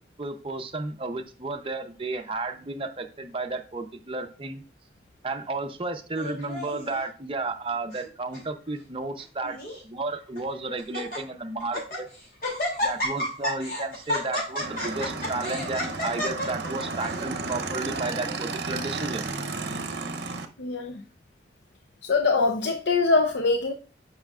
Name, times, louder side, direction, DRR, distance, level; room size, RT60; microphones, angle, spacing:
voice 1, 0.2-4.6 5.2-9.6 9.8-12.1 12.8-19.3, right 3 dB, 30° right, 5 dB, 0.7 m, -32 dB
Laughter, 6.2-7.0 7.7-8.1 8.3-8.4 9.2-9.8 10.4-10.5 10.8-11.2 11.6-12.0 12.4-17.2, left 1 dB, 50° left, 2.8 m, -31 dB
Motorcycle / Engine, 14.6-20.5, right 3 dB, 70° right, 0.8 m, -33 dB
voice 2, 20.6-20.9 22.0-23.7, left 3 dB, 70° left, 6 dB, 0.6 m, -23 dB
7.8 x 5.6 x 2.4 m, 0.37 s
head